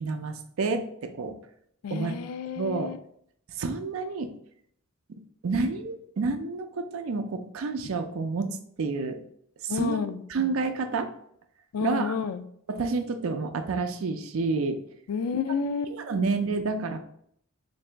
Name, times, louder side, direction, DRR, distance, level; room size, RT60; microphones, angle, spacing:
voice 1, 0.0-1.4 1.9-2.1 2.6-2.9 3.6-4.3 5.1-9.2 9.6-10.0 10.3-11.1 11.8-12.1 12.7-14.8 15.9-17.0, right 4 dB, 70° right, 7 dB, 0.4 m, -29 dB
voice 2, 1.8-3.0 9.7-10.2 11.7-12.4 15.1-15.9 16.2-16.3, left 5 dB, 90° left, 10 dB, 0.3 m, -30 dB
3.8 x 2.6 x 3.3 m, 0.67 s
head